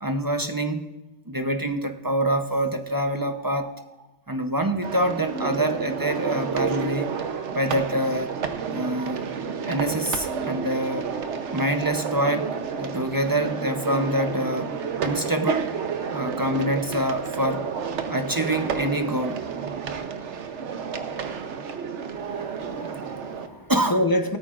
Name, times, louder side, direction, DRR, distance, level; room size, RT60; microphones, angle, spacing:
voice 1, 0.0-0.9 1.3-3.9 4.3-7.1 7.5-8.4 8.7-9.2 9.7-11.1 11.5-12.5 12.8-14.7 15.0-15.7 16.1-17.6 18.1-19.4 22.7-23.1 23.7-24.0, right 1 dB, 25° right, 7 dB, 0.6 m, -26 dB
sound 1, 4.8-23.5, right 6 dB, 85° right, 1.2 m, -30 dB
voice 2, 22.1-24.4, left 1 dB, 20° left, 6 dB, 0.9 m, -28 dB
17.5 x 13.0 x 2.5 m, 1.0 s
omnidirectional pair, 1.2 m